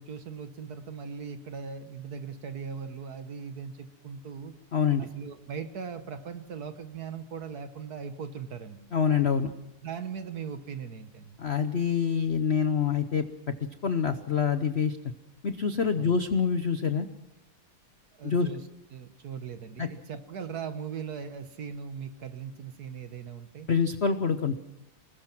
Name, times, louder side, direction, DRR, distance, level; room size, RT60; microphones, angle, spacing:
voice 1, 0.0-4.5 5.0-8.8 9.8-11.4 16.0-16.2 18.1-18.6 18.9-23.7, right 6 dB, 50° right, 9 dB, 1.6 m, -39 dB
voice 2, 4.7-5.1 8.9-9.5 11.4-13.2 13.8-15.0 15.4-17.1 18.2-18.5 19.8-19.9 23.7-24.6, left 6 dB, 80° left, 9 dB, 0.5 m, -26 dB
25.5 x 20.0 x 6.0 m, 0.93 s
omnidirectional pair, 2.4 m